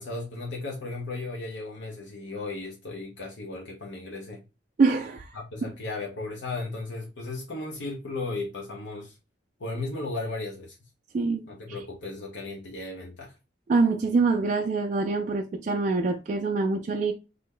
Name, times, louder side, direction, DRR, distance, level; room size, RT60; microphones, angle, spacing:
voice 1, 0.0-4.4 5.3-9.1 9.6-10.8 11.5-13.3, left 2 dB, 90° left, 0.7 m, -35 dB
voice 2, 4.8-5.3 11.1-11.4 13.7-17.1, right 4 dB, 40° right, 0.3 m, -24 dB
3.3 x 2.1 x 3.6 m
head